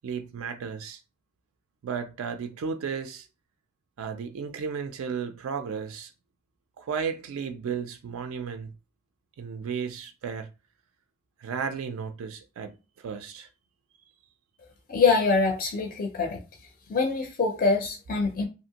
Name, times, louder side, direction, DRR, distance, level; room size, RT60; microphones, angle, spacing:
voice 1, 0.0-1.0 1.8-3.3 4.0-6.1 6.8-8.7 9.4-10.5 11.4-13.5, right 6 dB, 70° right, 0.3 m, -34 dB
voice 2, 14.9-16.4 16.9-18.5, left 4 dB, 40° left, 0.4 m, -24 dB
2.7 x 2.5 x 2.8 m
head